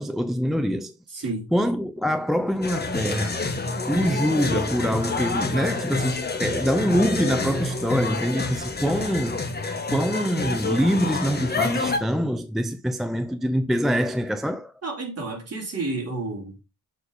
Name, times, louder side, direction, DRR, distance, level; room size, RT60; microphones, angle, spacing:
voice 1, 0.0-3.4 3.9-9.4 9.9-14.7, equal, ahead, 0.4 m, -25 dB
voice 2, 1.1-1.5 14.8-16.6, right 3 dB, 40° right, 3.2 m, -30 dB
sound 1, 2.6-12.0, left 3 dB, 25° left, 1.3 m, -28 dB
6.9 x 4.1 x 5.3 m
wide cardioid pair, 115°, 37 cm